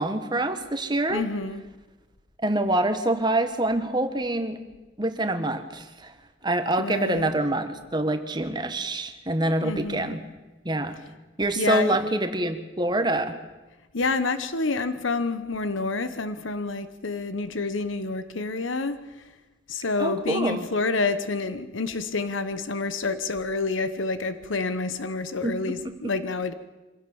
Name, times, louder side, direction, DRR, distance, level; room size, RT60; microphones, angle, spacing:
voice 1, 0.0-1.2 2.4-4.6 5.0-6.1 6.4-10.2 10.6-11.0 11.4-13.4 20.0-20.6 25.4-25.8, right 1 dB, 20° right, 1.4 m, -26 dB
voice 2, 1.1-1.6 6.8-7.3 9.6-10.2 11.6-12.0 13.9-19.2 19.7-26.5, left 3 dB, 85° left, 1.1 m, -28 dB
25.0 x 16.0 x 7.1 m
head